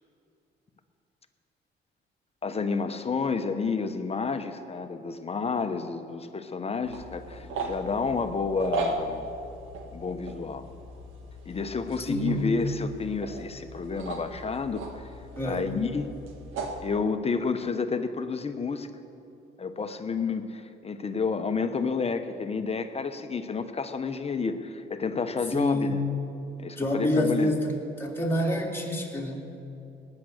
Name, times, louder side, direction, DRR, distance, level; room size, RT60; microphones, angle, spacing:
voice 1, 2.4-9.3 9.9-10.7 11.4-14.8 15.4-16.1 16.8-18.9 19.6-26.0 26.6-27.5, left 4 dB, 30° left, 8 dB, 1.0 m, -30 dB
sound 1, 6.8-16.8, right 2 dB, 90° right, 1.6 m, -38 dB
voice 2, 12.1-12.5 15.4-15.7 25.5-26.0 26.8-29.5, left 1 dB, 10° left, -2 dB, 2.8 m, -27 dB
19.0 x 9.8 x 6.6 m, 2.8 s
cardioid pair, 90°, 20 cm